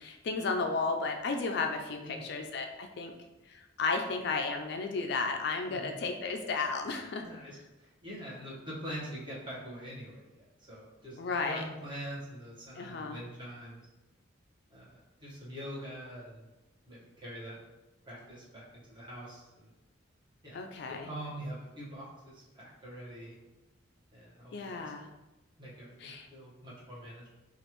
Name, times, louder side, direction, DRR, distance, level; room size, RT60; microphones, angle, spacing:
voice 1, 0.0-3.1 3.5-7.2 11.2-11.6 12.8-13.2 20.5-21.1 24.5-25.1 26.0-26.3, left 4 dB, 55° left, 5 dB, 0.3 m, -33 dB
voice 2, 2.0-2.4 5.7-6.0 7.2-13.8 14.7-14.9 15.2-16.5 16.9-17.6 18.0-19.7 20.4-20.6 20.9-23.3 24.1-24.9 25.6-27.3, equal, 25° right, -7 dB, 1.2 m, -44 dB
5.1 x 2.5 x 3.0 m, 1.0 s
head